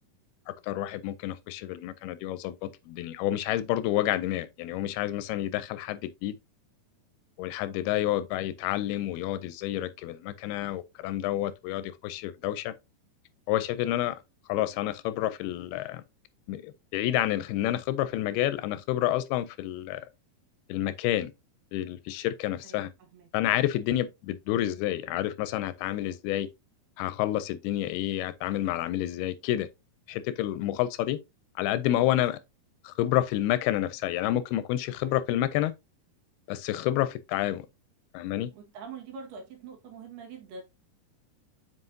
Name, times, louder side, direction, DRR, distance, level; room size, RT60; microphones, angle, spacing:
voice 1, 0.5-6.4 7.4-12.7 13.5-14.2 14.5-16.0 16.5-20.1 20.7-21.3 21.7-22.9 23.3-26.5 27.0-29.7 30.1-31.2 31.6-32.4 32.8-35.7 36.5-37.7 38.1-38.5, left 13 dB, 85° left, 2.4 m, -29 dB
voice 2, 22.6-23.3 35.0-35.2 38.5-40.6, right 5 dB, 75° right, 3.6 m, -45 dB
7.8 x 5.2 x 2.7 m
omnidirectional pair, 4.6 m